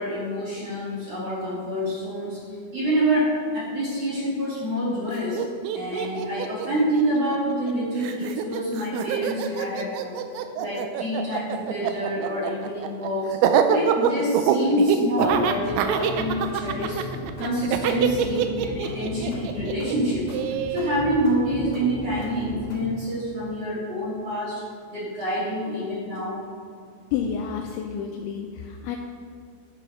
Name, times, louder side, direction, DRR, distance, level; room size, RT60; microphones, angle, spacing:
voice 1, 0.0-5.4 5.7-10.2 10.6-17.1 17.4-20.4 20.7-24.6 24.9-26.4, equal, 45° right, -8 dB, 2.5 m, -27 dB
Laughter, 5.1-5.2 5.4-7.7 8.0-21.0, right 8 dB, 90° right, 2.6 m, -25 dB
sound 1, 15.2-22.9, left 1 dB, 45° left, 4.5 m, -36 dB
voice 2, 27.1-29.0, left 7 dB, 85° left, 3 dB, 2.7 m, -30 dB
12.5 x 6.3 x 5.6 m, 2.3 s
omnidirectional pair, 5.9 m